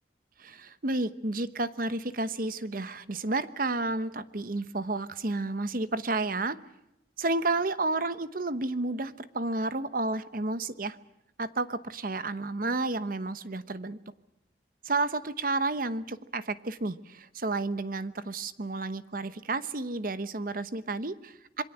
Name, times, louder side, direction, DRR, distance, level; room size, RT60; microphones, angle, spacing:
voice 1, 0.4-6.6 7.2-11.0 11.4-14.0 14.8-21.6, right 2 dB, 50° right, 14 dB, 1.0 m, -31 dB
27.0 x 22.5 x 8.0 m, 0.88 s
head